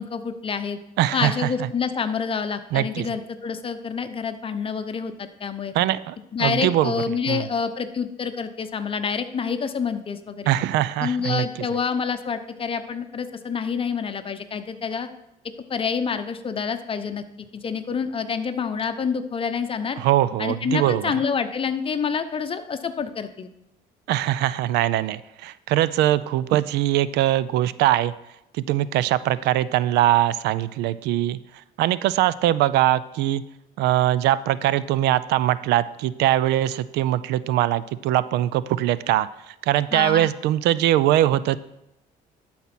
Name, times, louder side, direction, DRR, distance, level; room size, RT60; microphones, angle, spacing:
voice 1, 0.0-0.8 1.1-5.7 6.3-10.5 11.0-15.1 15.7-17.2 17.5-20.0 20.4-23.5 39.9-40.3, left 6 dB, 30° left, 9 dB, 0.8 m, -27 dB
voice 2, 1.0-1.5 2.7-3.1 5.7-6.9 7.3-7.5 10.5-11.5 20.0-21.1 24.1-28.1 28.5-31.4 31.8-33.4 33.8-41.6, right 13 dB, 80° right, 17 dB, 0.4 m, -22 dB
12.0 x 4.3 x 6.0 m, 0.87 s
cardioid pair, 110°, 17 cm